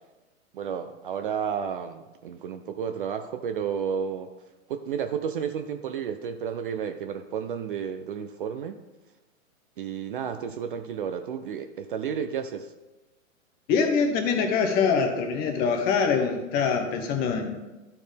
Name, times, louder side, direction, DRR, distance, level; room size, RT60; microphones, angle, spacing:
voice 1, 0.5-4.3 4.7-8.8 9.8-12.7, right 7 dB, 40° right, 8 dB, 0.4 m, -32 dB
voice 2, 13.7-17.6, left 5 dB, 20° left, 5 dB, 0.7 m, -24 dB
12.0 x 4.4 x 3.4 m, 1.1 s
hypercardioid pair, 130°, 41 cm